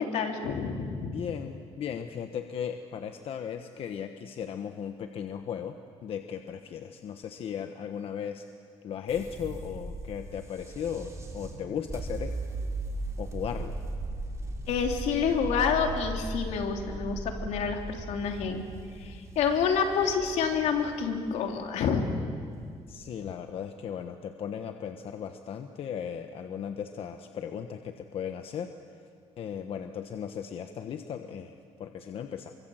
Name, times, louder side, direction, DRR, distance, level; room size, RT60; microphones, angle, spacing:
voice 1, 0.0-1.2 14.7-18.6 19.0-22.2, left 6 dB, 85° left, 3 dB, 3.3 m, -28 dB
voice 2, 1.1-5.8 6.0-8.4 8.8-12.3 13.2-13.7 22.9-28.7 29.4-32.5, left 8 dB, 55° left, 6 dB, 1.2 m, -36 dB
sound 1, 9.1-23.3, right 2 dB, 25° right, 3.5 m, -38 dB
28.5 x 24.5 x 8.0 m, 2.1 s
cardioid pair, 130°, 11 cm